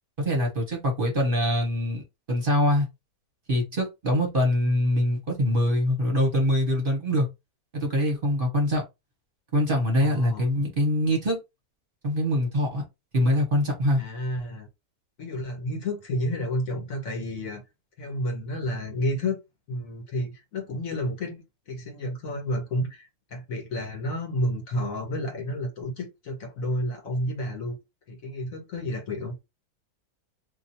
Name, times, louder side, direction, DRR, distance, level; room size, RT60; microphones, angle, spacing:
voice 1, 0.2-2.9 3.5-7.3 7.7-8.8 9.5-11.4 12.0-12.8 13.1-14.0, equal, 40° right, 1.2 m, -24 dB
voice 2, 10.0-10.6 14.0-14.7 15.2-17.6 18.0-19.4 19.7-21.4 21.7-27.8 28.1-29.3, left 1 dB, 65° left, 1.6 m, -31 dB
2.7 x 2.6 x 4.3 m
omnidirectional pair, 1.6 m